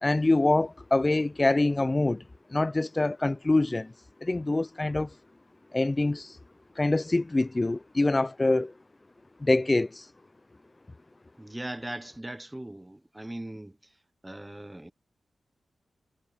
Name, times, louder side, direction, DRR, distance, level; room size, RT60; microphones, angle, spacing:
voice 1, 0.0-2.2 2.5-3.9 4.2-5.1 5.7-6.4 6.8-8.7 9.4-10.1, left 2 dB, 25° left, 0.5 m, -25 dB
voice 2, 11.4-13.8 14.2-14.9, right 1 dB, 15° right, 0.9 m, -39 dB
cardioid pair, 70°, 0 cm